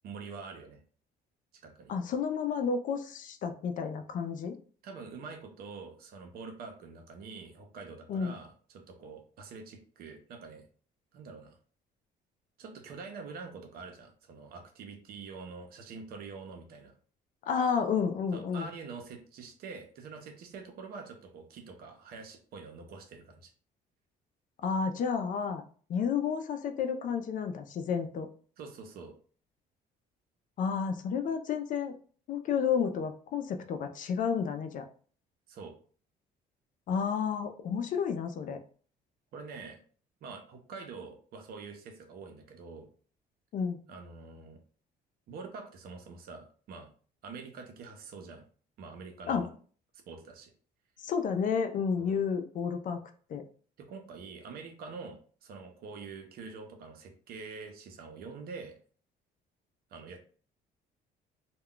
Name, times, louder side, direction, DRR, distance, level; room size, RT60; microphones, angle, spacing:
voice 1, 0.0-0.8 1.6-1.9 4.8-10.7 11.1-11.6 12.6-16.9 18.3-23.5 28.6-29.2 35.5-35.7 39.3-39.8 40.2-42.9 43.9-44.6 45.3-46.9 47.2-48.5 48.8-49.5 50.1-50.5 52.0-52.2 53.8-58.8 59.9-60.2, right 4 dB, 65° right, 5 dB, 0.7 m, -45 dB
voice 2, 1.9-4.6 8.1-8.3 17.5-18.7 24.6-25.6 25.9-28.3 30.6-31.9 32.3-34.9 36.9-38.6 43.5-43.8 49.3-49.4 51.0-53.0 53.3-53.4, left 6 dB, 50° left, 7 dB, 0.4 m, -31 dB
2.2 x 2.2 x 3.7 m, 0.43 s
cardioid pair, 110°, 17 cm